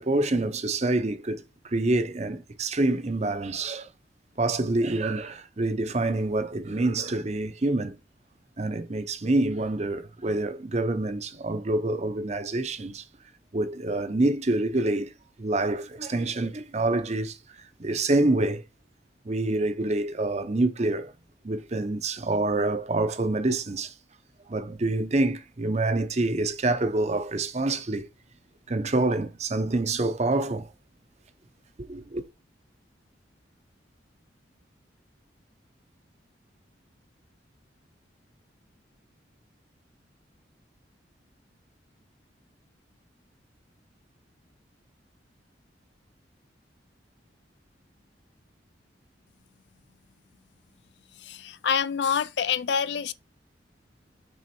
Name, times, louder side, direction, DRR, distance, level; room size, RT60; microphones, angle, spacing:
voice 1, 0.0-3.9 4.4-8.0 8.6-13.0 13.5-15.1 15.4-18.6 19.2-21.1 21.4-23.9 24.5-28.1 28.7-30.7 31.8-32.3, right 2 dB, 35° right, 0.7 m, -27 dB
voice 2, 51.2-53.1, left 7 dB, 70° left, 0.4 m, -26 dB
6.4 x 3.7 x 4.3 m
head